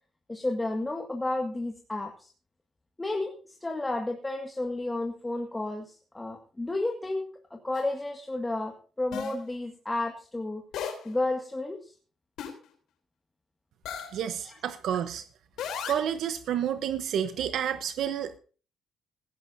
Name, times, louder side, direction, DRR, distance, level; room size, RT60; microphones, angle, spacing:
voice 1, 0.3-2.3 3.0-3.3 3.6-7.2 7.5-10.6 11.1-11.9 14.4-14.6, left 2 dB, 15° left, 2 dB, 1.9 m, -32 dB
sound 1, 7.7-7.8 9.1-9.4 10.7-11.1 12.4-12.7 13.8-14.2 15.6-16.1, left 7 dB, 85° left, 3.4 m, -35 dB
voice 2, 14.1-15.2 15.9-18.4, right 9 dB, 75° right, 10 dB, 0.9 m, -30 dB
16.0 x 14.0 x 2.7 m, 0.38 s
cardioid pair, 90°, 0 cm